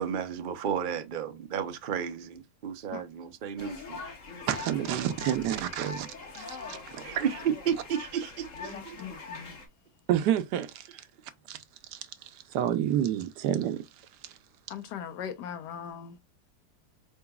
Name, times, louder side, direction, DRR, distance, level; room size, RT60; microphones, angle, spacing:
voice 1, 0.0-4.0 7.0-9.0, right 8 dB, 60° right, 0.5 m, -32 dB
sound 1, 3.6-9.7, left 4 dB, 50° left, 1.5 m, -42 dB
voice 2, 4.5-7.3 10.1-11.1 11.5-11.6 11.9-14.4, right 10 dB, 80° right, 1.2 m, -30 dB
voice 3, 8.7-9.6 14.7-16.2, left 8 dB, 80° left, 1.4 m, -40 dB
4.6 x 3.9 x 2.2 m
omnidirectional pair, 1.8 m